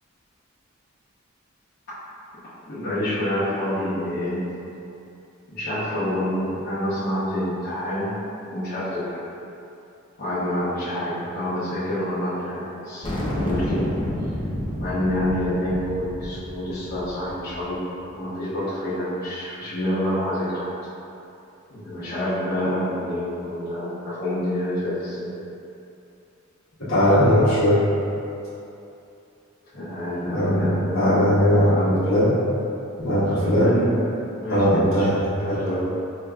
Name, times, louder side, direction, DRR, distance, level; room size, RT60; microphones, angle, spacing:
voice 1, 2.7-4.5 5.5-8.2 8.5-9.2 10.2-13.9 14.8-17.8 18.1-20.7 21.7-25.3 29.7-32.1 33.3-34.0 34.4-35.8, left 1 dB, 50° left, -14 dB, 1.0 m, -27 dB
sound 1, 13.0-17.7, equal, 25° left, 0.6 m, -29 dB
voice 2, 26.8-27.8 30.3-30.6 30.9-31.8 32.1-32.3 33.0-33.8 34.5-35.1, equal, 80° left, -12 dB, 1.4 m, -19 dB
4.9 x 2.9 x 2.3 m, 2.8 s
head